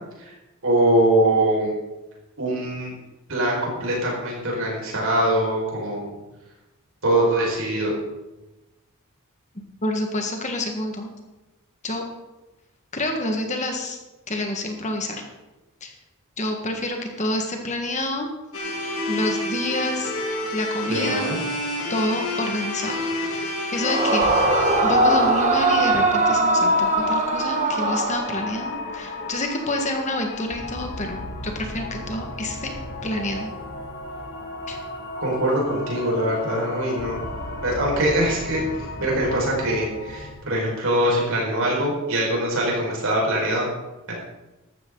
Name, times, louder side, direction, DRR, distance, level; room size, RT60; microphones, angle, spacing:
voice 1, 0.6-1.7 2.4-2.9 3.3-6.1 7.0-7.9 20.9-21.4 35.2-37.2 37.6-38.6 39.0-43.7 44.1-44.2, right 1 dB, 65° right, -3 dB, 5.4 m, -22 dB
voice 2, 9.8-11.1 11.8-12.0 12.9-14.0 14.3-15.2 15.8-15.9 16.4-18.3 19.1-20.1 20.5-21.3 21.9-23.0 23.2-24.3 24.8-32.7 33.0-33.5 34.7-34.8, left 1 dB, 30° left, 3 dB, 1.7 m, -28 dB
sound 1, 18.5-26.7, left 1 dB, 70° left, 3.1 m, -29 dB
Yell / Screaming, 23.8-28.7, right 2 dB, 35° right, 1.5 m, -21 dB
sound 2, 24.2-40.3, left 2 dB, 50° left, 2.6 m, -34 dB
14.5 x 12.5 x 4.0 m, 1.0 s
head